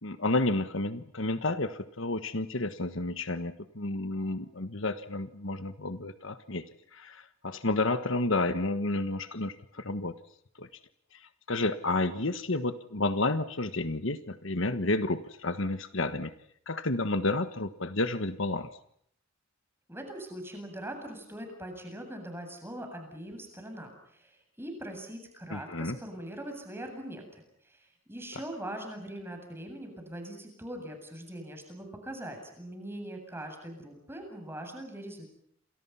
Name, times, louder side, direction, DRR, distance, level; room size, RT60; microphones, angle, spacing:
voice 1, 0.0-6.6 6.9-10.1 10.6-10.7 11.5-16.3 16.7-18.7 25.5-26.0, left 2 dB, 60° left, 11 dB, 1.4 m, -31 dB
voice 2, 19.9-35.3, right 1 dB, 10° right, 4 dB, 7.8 m, -42 dB
29.0 x 28.0 x 5.8 m, 0.68 s
head